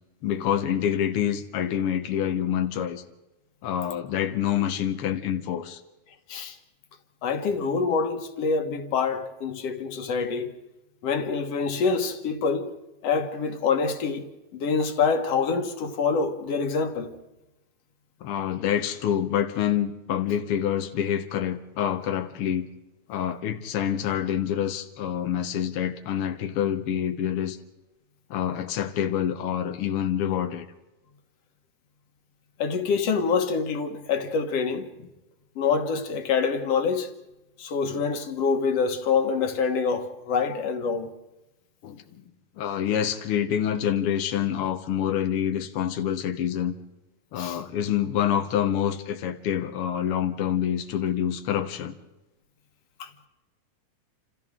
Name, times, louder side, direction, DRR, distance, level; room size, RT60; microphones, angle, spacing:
voice 1, 0.2-3.0 3.6-5.8 18.2-22.7 23.1-27.6 28.3-30.7 41.8-42.0 42.6-46.7 47.3-51.9, left 9 dB, 75° left, 1.3 m, -27 dB
voice 2, 7.2-10.5 11.0-12.7 13.0-14.3 14.5-17.1 32.6-35.1 35.6-37.1 37.6-41.1 47.4-47.6 53.0-53.1, left 5 dB, 55° left, 2.1 m, -26 dB
28.5 x 27.5 x 3.7 m
omnidirectional pair, 3.9 m